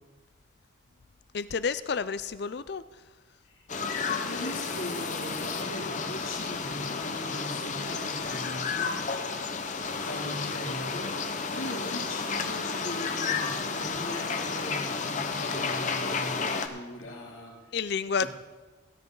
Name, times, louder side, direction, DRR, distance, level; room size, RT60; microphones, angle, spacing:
voice 1, 1.3-2.8 17.7-18.3, left 5 dB, 55° left, 15 dB, 0.4 m, -30 dB
sound 1, 3.7-16.7, left 4 dB, 40° left, 0.8 m, -32 dB
voice 2, 3.8-9.0 10.0-11.2 11.5-17.5 18.2-18.3, left 1 dB, 85° left, -3 dB, 3.0 m, -39 dB
16.5 x 10.5 x 4.0 m, 1.2 s
head